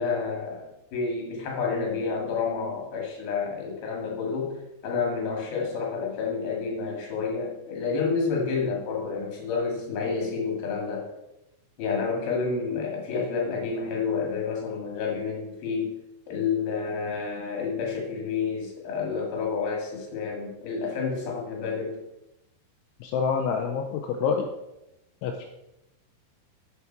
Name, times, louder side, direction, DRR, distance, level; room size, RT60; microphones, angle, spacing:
voice 1, 0.0-11.1 11.8-16.0 16.3-22.0, left 5 dB, 55° left, -1 dB, 3.3 m, -29 dB
voice 2, 23.0-24.5 25.2-25.5, left 6 dB, 85° left, 3 dB, 2.8 m, -27 dB
8.1 x 7.1 x 4.4 m, 0.89 s
omnidirectional pair, 5.8 m